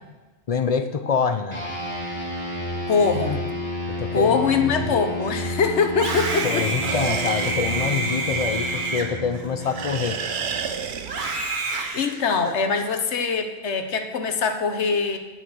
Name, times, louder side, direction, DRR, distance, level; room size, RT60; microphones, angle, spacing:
voice 1, 0.5-1.6 3.9-5.0 6.4-10.2, left 6 dB, 45° left, 9 dB, 0.5 m, -26 dB
sound 1, 1.5-11.2, left 1 dB, 10° left, 2.7 m, -32 dB
voice 2, 2.9-3.5 4.1-6.7 11.9-15.2, left 5 dB, 75° left, 6 dB, 1.3 m, -23 dB
Screaming, 5.9-10.4 11.0-12.8, right 3 dB, 45° right, 1.2 m, -29 dB
sound 2, 6.8-9.4 9.8-11.6, right 7 dB, 70° right, 1.0 m, -32 dB
9.3 x 8.0 x 6.2 m, 1.2 s
omnidirectional pair, 1.2 m